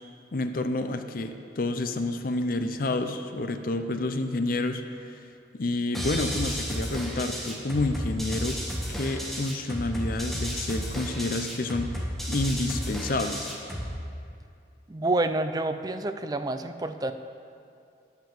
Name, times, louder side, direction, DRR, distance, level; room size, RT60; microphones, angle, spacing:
voice 1, 0.3-4.8 5.1-5.2 5.5-8.6 8.9-13.5, left 2 dB, 50° left, 7 dB, 0.5 m, -29 dB
sound 1, 5.9-13.9, equal, ahead, 1.3 m, -32 dB
voice 2, 14.9-17.1, right 2 dB, 20° right, 9 dB, 0.4 m, -28 dB
10.5 x 5.9 x 7.2 m, 2.4 s
head